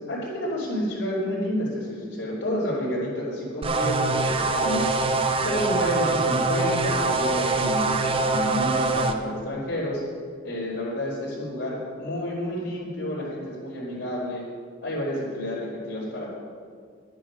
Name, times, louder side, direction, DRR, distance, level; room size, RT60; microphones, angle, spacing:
voice 1, 0.1-5.0 5.4-10.0 10.4-14.4 14.8-16.3, left 1 dB, 80° left, -9 dB, 3.5 m, -30 dB
sound 1, 3.6-9.1, right 3 dB, 30° right, 0.7 m, -24 dB
12.0 x 9.6 x 6.2 m, 2.1 s
head